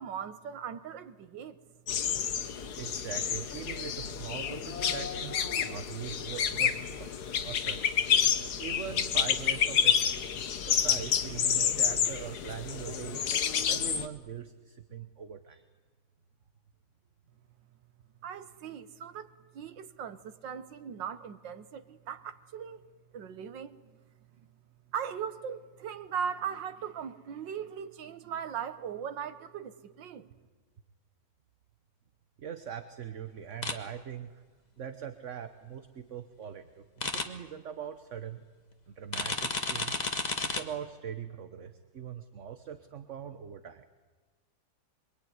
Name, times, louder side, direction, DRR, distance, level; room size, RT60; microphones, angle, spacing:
voice 1, 0.0-1.6 18.2-22.8 23.1-24.0 24.4-24.5 24.9-30.3, right 7 dB, 85° right, 1.8 m, -39 dB
sound 1, 1.9-14.1, left 8 dB, 65° left, 1.6 m, -29 dB
voice 2, 2.8-8.0 8.6-10.3 10.7-13.3 13.6-15.7 32.4-34.4 34.8-38.4 38.9-40.0 40.4-43.9, right 8 dB, 50° right, 1.2 m, -42 dB
sound 2, 33.6-33.7 37.0-37.2 39.1-40.6, left 3 dB, 25° left, 1.5 m, -31 dB
26.5 x 23.0 x 9.6 m
omnidirectional pair, 1.9 m